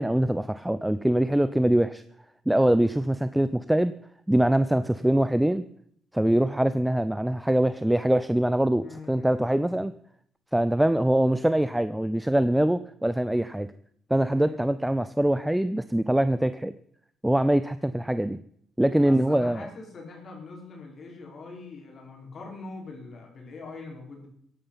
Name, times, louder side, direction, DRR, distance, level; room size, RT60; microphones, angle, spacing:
voice 1, 0.0-2.0 2.5-3.9 4.3-5.6 6.1-9.9 10.5-13.7 14.1-16.7 17.2-18.4 18.8-19.7, right 1 dB, 5° right, 13 dB, 0.6 m, -23 dB
voice 2, 8.8-9.8 14.3-14.7 19.0-24.3, left 3 dB, 50° left, 1 dB, 4.9 m, -43 dB
15.5 x 11.0 x 5.7 m, 0.66 s
cardioid pair, 90°, 0 cm